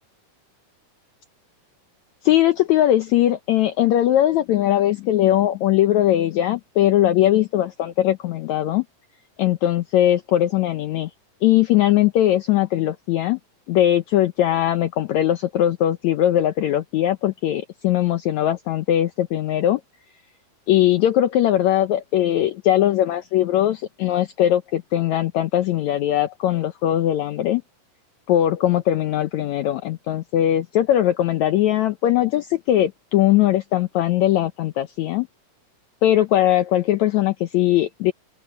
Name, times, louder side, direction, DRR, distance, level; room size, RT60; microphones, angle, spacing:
voice 1, 2.2-8.8 9.4-11.1 11.4-13.4 13.7-19.8 20.7-27.6 28.3-35.3 36.0-38.1, left 12 dB, 75° left, 1.8 m, -20 dB
omnidirectional pair, 3.9 m